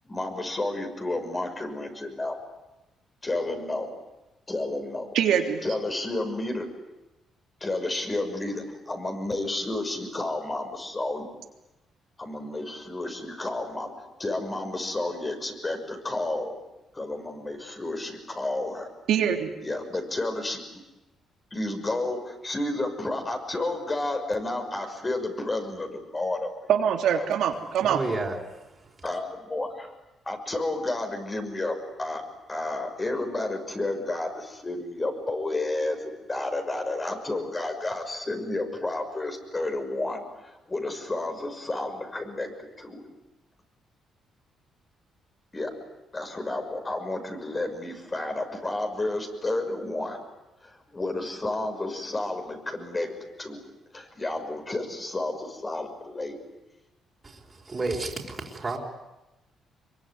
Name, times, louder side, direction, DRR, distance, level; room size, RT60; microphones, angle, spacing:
voice 1, 0.0-2.3 3.2-3.9 4.5-5.1 5.6-6.7 7.6-11.3 12.2-13.9 14.2-16.5 16.9-18.9 19.6-20.6 21.5-26.5 29.0-29.9 30.2-32.2 32.5-42.5 42.8-43.0 45.5-45.7 46.1-50.2 50.6-53.1 53.4-53.6 53.9-56.4, left 2 dB, 25° left, 5 dB, 6.1 m, -31 dB
voice 2, 5.1-5.6 19.1-19.5 26.7-28.0, right 8 dB, 80° right, 4 dB, 3.4 m, -23 dB
voice 3, 27.8-28.4 57.7-58.1 58.6-58.8, right 3 dB, 25° right, 0 dB, 4.7 m, -29 dB
25.0 x 23.0 x 9.7 m, 0.99 s
cardioid pair, 90°, 0 cm